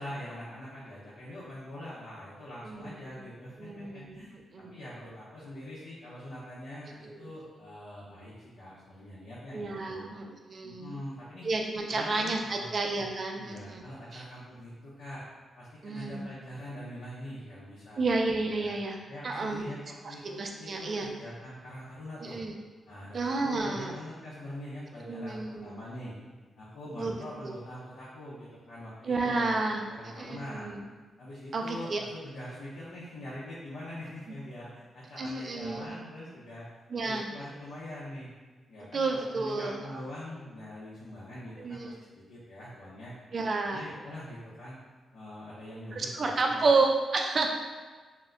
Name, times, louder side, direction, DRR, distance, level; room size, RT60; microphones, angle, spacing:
voice 1, 0.0-10.1 10.6-11.5 11.9-12.7 13.3-15.2 15.6-18.0 18.6-18.7 19.1-22.4 22.9-26.1 26.6-29.5 29.9-30.7 31.2-36.7 37.0-38.3 38.7-43.1 43.6-44.8 45.1-46.6, left 1 dB, 90° left, -9 dB, 0.6 m, -43 dB
voice 2, 2.6-3.2 3.6-4.3 4.5-4.7 7.0-7.3 9.5-11.0 11.4-13.8 14.1-14.2 15.8-16.3 18.0-19.0 19.2-19.7 20.0-21.1 22.2-22.6 23.1-23.9 25.0-25.8 27.0-27.1 27.4-27.5 29.0-30.8 31.5-32.0 35.2-35.9 36.9-37.3 38.9-39.9 41.6-42.0 43.3-43.8 45.9-47.5, right 3 dB, 40° right, 2 dB, 0.3 m, -31 dB
2.1 x 2.1 x 3.6 m, 1.4 s
wide cardioid pair, 140°, 0 cm